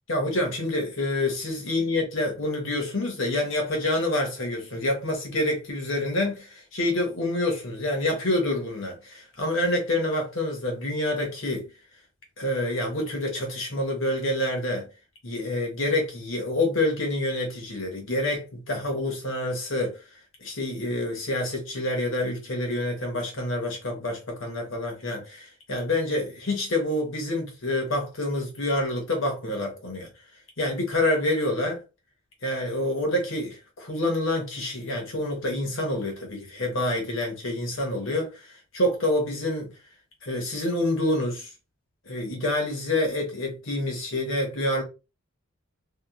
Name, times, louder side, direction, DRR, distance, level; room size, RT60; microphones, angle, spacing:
voice 1, 0.1-11.7 12.4-14.9 15.2-20.0 20.4-30.1 30.6-31.8 32.4-39.7 40.2-41.5 42.0-44.8, left 1 dB, 65° left, 1.0 m, -27 dB
2.8 x 2.3 x 2.4 m
head